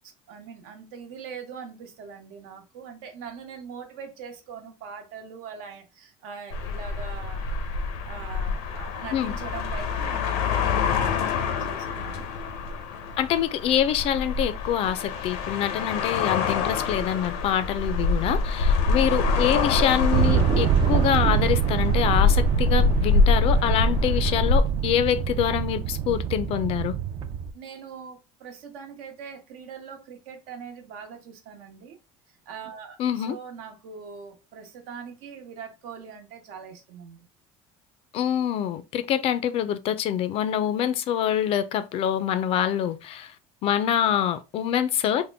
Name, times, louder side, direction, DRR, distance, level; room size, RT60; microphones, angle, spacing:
voice 1, 0.3-7.4 8.0-12.3 18.5-18.7 27.5-32.0 32.5-37.3, right 6 dB, 80° right, 1.0 m, -42 dB
sound 1, 6.5-24.6, left 4 dB, 85° left, 0.6 m, -25 dB
voice 2, 13.2-26.9 33.0-33.4 38.1-43.3 43.6-45.3, left 10 dB, 45° left, 0.4 m, -25 dB
sound 2, 20.1-27.5, right 8 dB, 40° right, 0.4 m, -25 dB
3.6 x 2.1 x 3.3 m
cardioid pair, 155°, 14 cm